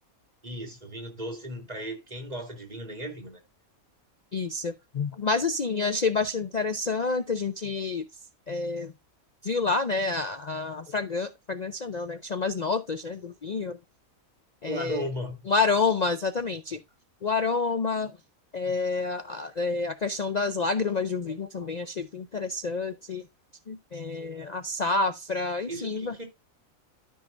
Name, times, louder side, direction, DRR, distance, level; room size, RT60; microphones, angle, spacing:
voice 1, 0.4-3.4 14.6-15.4 25.7-26.2, equal, 30° right, 2.6 m, -36 dB
voice 2, 4.3-8.0 8.5-8.9 9.4-13.8 14.6-15.1 15.5-16.8 17.2-18.1 18.5-23.3 23.7-26.1, left 4 dB, 50° left, 0.5 m, -28 dB
13.0 x 5.5 x 2.5 m
omnidirectional pair, 1.4 m